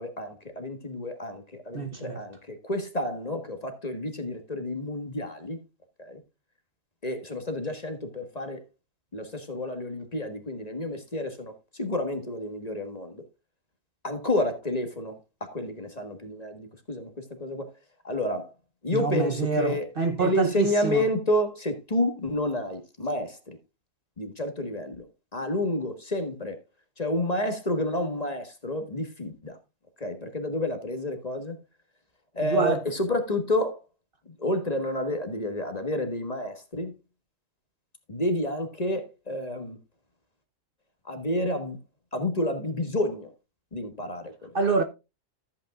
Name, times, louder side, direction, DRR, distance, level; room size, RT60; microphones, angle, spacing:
voice 1, 0.0-5.6 6.0-6.2 7.0-8.6 9.1-13.2 14.0-17.7 18.0-18.5 18.8-19.9 20.2-23.6 24.2-25.1 25.3-26.6 27.0-29.6 30.0-31.6 32.3-33.8 34.3-36.9 38.1-39.8 41.0-41.8 42.1-43.3 43.7-44.6, left 1 dB, 30° left, 1.5 m, -30 dB
voice 2, 1.7-2.2 18.9-21.0 32.4-32.8 44.5-44.8, right 4 dB, 45° right, 1.0 m, -26 dB
14.0 x 8.4 x 2.4 m
omnidirectional pair, 1.4 m